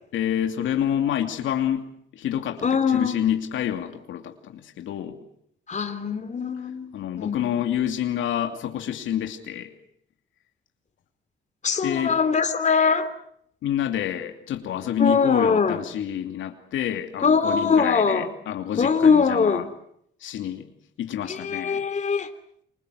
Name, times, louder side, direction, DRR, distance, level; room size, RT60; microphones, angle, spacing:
voice 1, 0.1-1.9 2.1-5.2 6.9-9.7 11.8-12.1 13.6-19.6 20.2-20.7 21.0-21.8, left 10 dB, 80° left, 5 dB, 2.7 m, -28 dB
voice 2, 2.6-3.2 5.7-7.5 11.6-13.1 15.0-15.8 17.2-18.3 18.8-19.7 21.3-22.3, left 5 dB, 35° left, 9 dB, 3.2 m, -22 dB
29.0 x 25.5 x 6.4 m, 0.69 s
cardioid pair, 90°, 20 cm